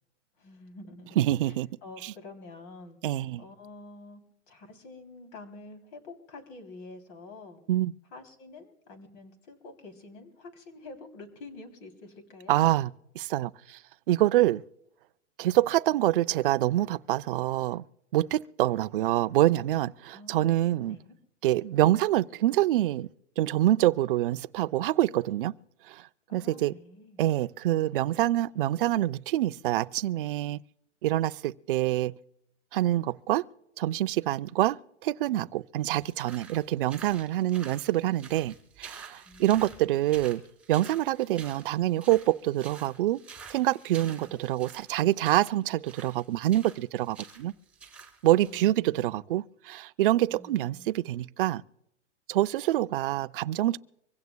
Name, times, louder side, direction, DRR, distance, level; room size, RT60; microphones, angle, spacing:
voice 1, 0.4-4.2 4.5-7.6 8.1-12.5 20.1-20.5 20.8-21.1 26.3-27.2 39.2-40.0 44.1-44.4 48.4-49.1 50.3-50.9, left 2 dB, 40° left, 3.1 m, -48 dB
voice 2, 1.2-1.7 3.0-3.4 7.7-7.9 12.5-12.9 13.2-13.8 14.1-14.6 15.4-17.8 18.1-21.0 21.4-23.1 23.4-25.5 25.9-26.0 26.3-26.7 27.2-30.6 31.0-32.1 32.7-33.4 33.8-34.8 35.0-40.4 40.7-43.2 43.5-47.5 48.2-51.6 52.3-53.8, right 14 dB, 50° right, 0.4 m, -26 dB
sound 1, 35.8-48.6, right 5 dB, 5° right, 2.1 m, -49 dB
25.0 x 16.0 x 2.2 m
hypercardioid pair, 160°, 36 cm